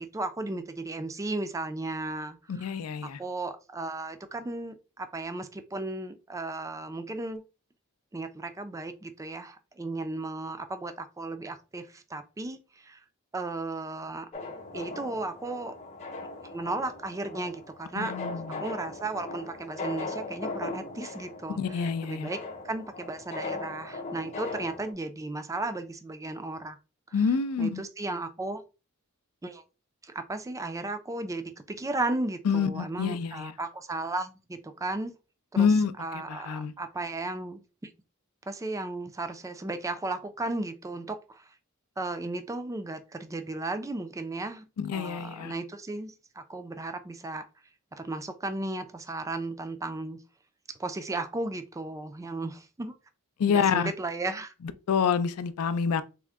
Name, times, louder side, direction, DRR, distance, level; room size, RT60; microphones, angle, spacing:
voice 1, 0.0-2.8 3.0-7.4 8.1-13.0 13.3-14.3 14.7-15.7 16.4-18.1 18.6-26.8 27.1-27.2 27.6-28.6 29.4-29.6 30.0-35.1 35.5-37.9 38.5-41.5 42.0-47.4 47.9-50.2 50.7-53.0 53.5-54.5, right 2 dB, 15° right, 0.3 m, -35 dB
voice 2, 2.5-3.2 18.0-18.4 21.6-22.3 27.1-27.8 32.5-33.5 35.6-35.9 36.3-36.7 44.8-45.5 53.4-53.9 54.9-56.0, left 6 dB, 75° left, 0.4 m, -27 dB
sound 1, 14.3-24.9, left 3 dB, 30° left, 0.7 m, -39 dB
3.6 x 2.1 x 3.4 m
head